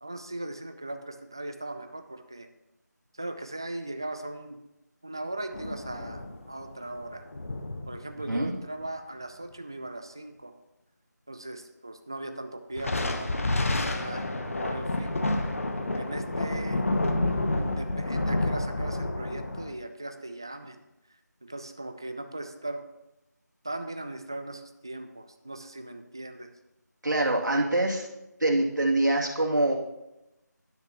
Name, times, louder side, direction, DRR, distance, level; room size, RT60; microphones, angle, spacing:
voice 1, 0.0-2.5 3.2-4.6 5.0-6.2 6.5-7.2 7.9-10.5 11.3-15.3 16.0-16.8 17.5-20.8 21.4-22.8 23.6-26.5, right 2 dB, 15° right, 8 dB, 0.3 m, -39 dB
sound 1, 5.5-8.8 12.8-19.7, left 2 dB, 45° left, 1.1 m, -29 dB
voice 2, 27.0-28.1 28.4-29.8, right 2 dB, 75° right, -1 dB, 2.7 m, -24 dB
12.0 x 10.5 x 3.0 m, 0.92 s
figure-of-eight pair, 165°, 10 cm